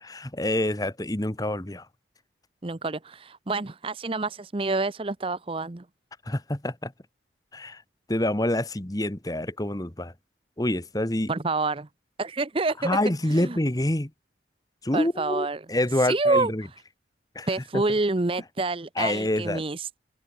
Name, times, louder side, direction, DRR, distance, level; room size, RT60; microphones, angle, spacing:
voice 1, 0.0-1.9 6.3-6.9 7.5-7.8 8.1-10.1 10.6-11.3 12.8-14.1 14.8-16.7 17.3-17.5 17.7-17.8 19.0-19.6, left 1 dB, 20° left, 1.3 m, -27 dB
voice 2, 2.6-5.8 11.3-11.9 12.2-13.0 13.3-13.6 14.9-15.6 16.0-16.5 17.5-20.0, right 3 dB, 30° right, 0.7 m, -27 dB
head